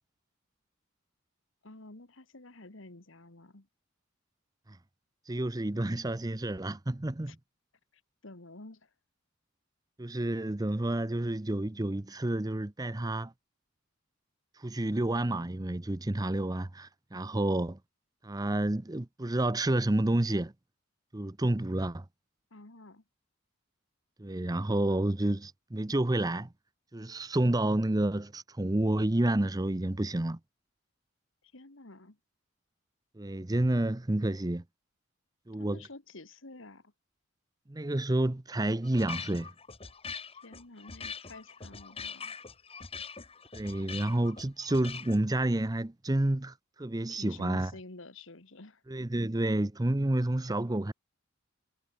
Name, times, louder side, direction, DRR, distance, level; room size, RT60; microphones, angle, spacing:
voice 1, 1.6-3.7 7.3-7.4 7.9-8.9 22.5-23.0 31.4-32.2 35.6-36.9 40.3-42.4 47.1-48.8, left 2 dB, 60° left, 1.8 m, -50 dB
voice 2, 5.3-7.4 10.0-13.3 14.6-17.8 18.2-20.5 21.1-22.0 24.2-26.5 26.9-30.4 33.2-34.6 35.5-35.8 37.7-39.5 43.5-47.7 48.9-50.9, right 1 dB, 15° right, 0.6 m, -29 dB
sound 1, 38.7-45.2, left 5 dB, 25° left, 1.8 m, -43 dB
head